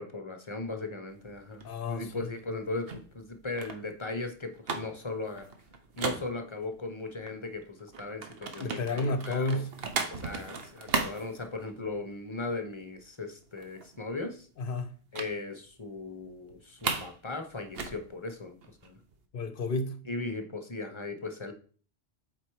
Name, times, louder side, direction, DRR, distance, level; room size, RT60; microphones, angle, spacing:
voice 1, 0.0-2.9 3.1-5.5 6.0-9.6 10.1-14.5 15.1-18.6 18.8-19.0 20.0-21.5, left 3 dB, 25° left, 0.9 m, -37 dB
sound 1, 1.1-6.9 7.2-12.1 12.4-12.7 13.0-13.1 13.4-14.1 15.1-15.4 15.7-15.8 16.2-17.2 17.4-19.2, right 4 dB, 60° right, 1.1 m, -37 dB
voice 2, 1.6-2.3 8.6-9.7 14.6-14.9 19.3-20.1, left 2 dB, 55° left, 0.9 m, -31 dB
8.0 x 4.2 x 4.7 m
omnidirectional pair, 1.2 m